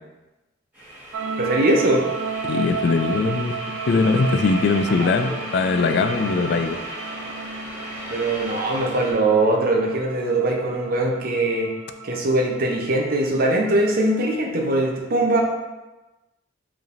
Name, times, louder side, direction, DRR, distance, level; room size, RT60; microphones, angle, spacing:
sound 1, 0.7-9.1, equal, 10° right, 1.4 m, -36 dB
sound 2, 1.1-14.4, right 5 dB, 90° right, 0.3 m, -34 dB
voice 1, 1.4-2.0 5.2-5.4 8.1-11.7 12.0-15.4, right 2 dB, 50° right, 0 dB, 0.7 m, -21 dB
voice 2, 2.4-3.5 3.9-6.8, left 4 dB, 60° left, 8 dB, 0.3 m, -21 dB
4.9 x 3.4 x 2.6 m, 1.1 s
head